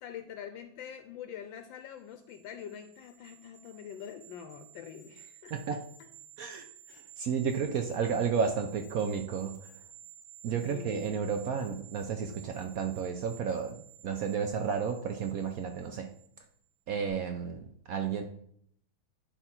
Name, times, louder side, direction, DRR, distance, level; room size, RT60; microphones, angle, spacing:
voice 1, 0.0-5.8 10.5-11.1, left 8 dB, 75° left, 7 dB, 1.3 m, -45 dB
sound 1, 2.0-16.6 16.9-17.1, right 9 dB, 45° right, 1.4 m, -54 dB
voice 2, 6.4-9.7 10.4-16.1 16.9-18.2, right 6 dB, 75° right, 6 dB, 0.8 m, -32 dB
10.0 x 3.4 x 4.4 m, 0.66 s
omnidirectional pair, 2.2 m